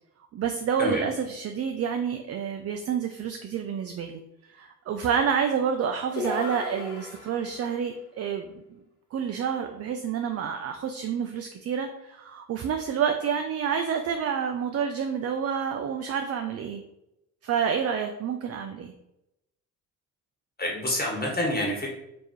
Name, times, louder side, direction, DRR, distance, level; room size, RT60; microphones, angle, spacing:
voice 1, 0.3-4.2 4.5-8.8 9.1-16.8 17.4-18.9, right 7 dB, 45° right, 6 dB, 0.4 m, -29 dB
sound 1, 6.2-7.7, left 1 dB, 90° left, 1.4 m, -35 dB
voice 2, 20.6-21.9, left 1 dB, 30° left, -1 dB, 1.3 m, -27 dB
4.5 x 2.6 x 3.1 m, 0.86 s
cardioid pair, 70°, 34 cm